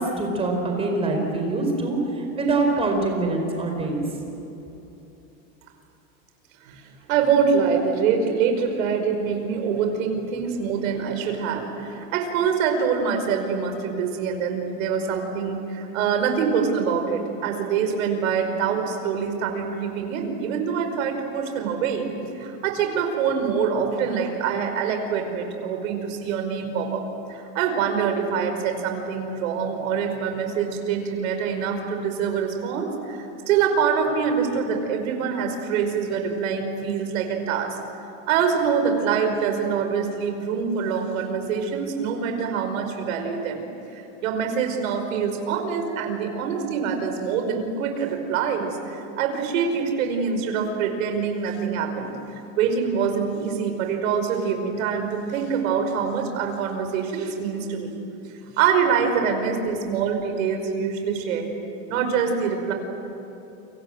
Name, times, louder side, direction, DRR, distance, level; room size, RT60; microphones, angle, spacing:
voice 1, 0.0-4.0, right 2 dB, 15° right, 2 dB, 4.5 m, -24 dB
voice 2, 7.1-27.0 27.3-37.8 38.3-43.7 43.9-52.2 52.6-57.9 58.6-61.5 61.9-62.7, right 6 dB, 75° right, 5 dB, 5.2 m, -25 dB
29.5 x 24.5 x 7.8 m, 2.9 s
supercardioid pair, 170°, 40 cm